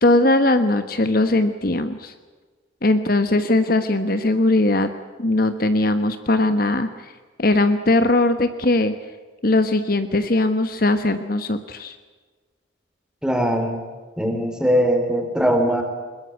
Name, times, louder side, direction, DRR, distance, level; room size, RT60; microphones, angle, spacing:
voice 1, 0.0-2.1 2.8-4.9 5.2-7.1 7.4-8.9 9.4-12.0, left 2 dB, 50° left, 9 dB, 1.2 m, -19 dB
voice 2, 13.2-13.8 14.2-15.8, equal, 5° right, 4 dB, 3.8 m, -20 dB
22.0 x 21.5 x 7.9 m, 1.4 s
head